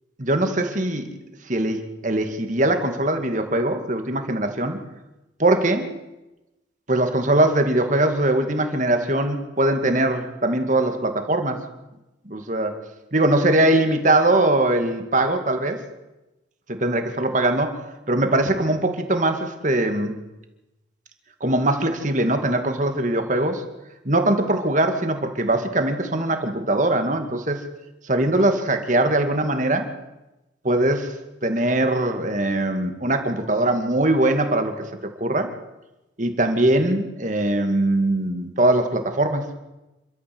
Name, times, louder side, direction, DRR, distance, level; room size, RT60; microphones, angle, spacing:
voice 1, 0.2-1.1 1.5-4.8 5.4-5.9 6.9-11.6 12.3-12.8 13.1-15.8 16.7-17.8 18.1-20.2 21.4-23.6 24.0-27.6 28.0-29.9 30.6-31.1 31.4-35.5 36.2-39.5, right 1 dB, 45° right, 6 dB, 2.3 m, -21 dB
28.0 x 13.0 x 7.9 m, 1.0 s
head